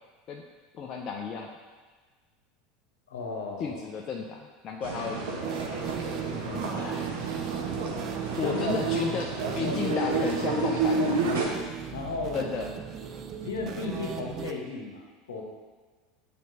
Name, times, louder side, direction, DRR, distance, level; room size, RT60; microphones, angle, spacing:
voice 1, 0.7-1.5 3.6-5.5 6.7-7.2 8.4-11.2 12.3-12.7, left 5 dB, 40° left, 0 dB, 0.5 m, -33 dB
voice 2, 3.1-3.9 6.4-6.9 8.4-8.6 9.9-10.0 11.8-12.5 13.4-15.4, left 4 dB, 75° left, -1 dB, 1.1 m, -35 dB
sound 1, 4.8-11.5, right 3 dB, 70° right, 1.0 m, -30 dB
sound 2, 5.4-14.5, right 9 dB, 40° right, 0.4 m, -36 dB
9.0 x 4.2 x 2.8 m, 1.4 s
figure-of-eight pair, 75°, 0 cm